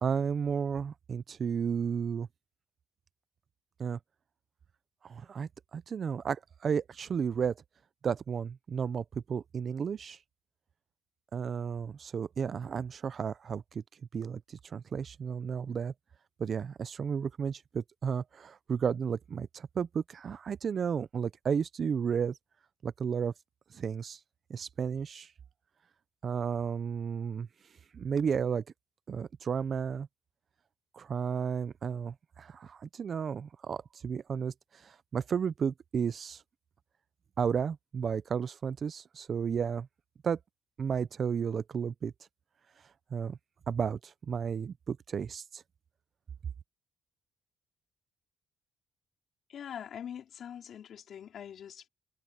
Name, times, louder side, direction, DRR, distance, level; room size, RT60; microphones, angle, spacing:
voice 1, 0.0-2.3 3.8-4.0 5.0-7.5 8.0-10.2 11.3-13.8 14.1-15.9 16.4-22.3 22.8-23.3 23.7-24.2 24.5-25.3 26.2-27.5 27.9-28.6 29.1-30.1 30.9-36.4 37.4-39.9 40.2-40.4 40.8-42.1 43.1-43.4 43.7-45.6, right 7 dB, 50° right, 0.6 m, -33 dB
voice 2, 49.5-51.9, left 9 dB, 65° left, 3.6 m, -43 dB
cardioid pair, 90°, 0 cm